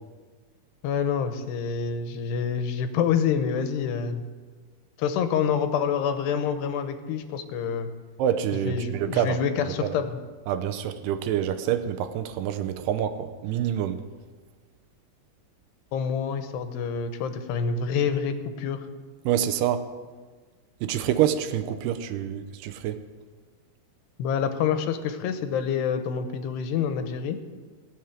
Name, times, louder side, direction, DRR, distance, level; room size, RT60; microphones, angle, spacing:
voice 1, 0.8-4.2 5.0-7.9 8.7-10.2 15.9-18.8 24.2-27.4, left 7 dB, 90° left, 9 dB, 3.0 m, -27 dB
voice 2, 8.2-9.4 9.8-9.9 10.5-14.0 19.3-19.9 20.8-23.0, right 10 dB, 90° right, 10 dB, 2.7 m, -26 dB
19.0 x 7.3 x 7.3 m, 1.4 s
omnidirectional pair, 4.7 m